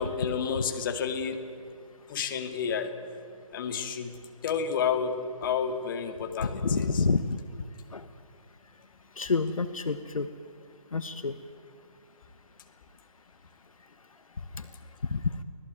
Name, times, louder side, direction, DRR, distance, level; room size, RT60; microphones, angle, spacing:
voice 1, 0.0-1.4 2.1-3.0 3.5-4.2 4.4-7.1, left 6 dB, 35° left, 7 dB, 2.2 m, -30 dB
voice 2, 6.6-7.2 7.9-8.0 9.2-10.3 10.9-11.3 15.1-15.2, left 4 dB, 75° left, 11 dB, 1.1 m, -27 dB
24.5 x 17.5 x 9.2 m, 2.3 s
figure-of-eight pair, 140°, 18 cm